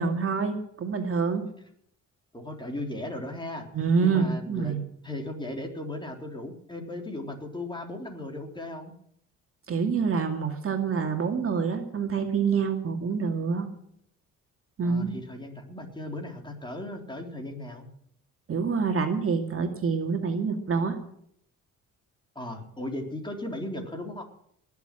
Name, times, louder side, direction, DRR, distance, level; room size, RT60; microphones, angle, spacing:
voice 1, 0.0-1.5 3.7-4.8 9.7-13.7 14.8-15.1 18.5-21.0, right 5 dB, 45° right, 4 dB, 2.4 m, -26 dB
voice 2, 2.3-3.7 4.0-4.8 5.0-8.9 14.8-17.9 22.4-24.2, left 1 dB, 15° left, 2 dB, 3.7 m, -36 dB
19.5 x 7.2 x 7.7 m, 0.68 s
cardioid pair, 90°, 30 cm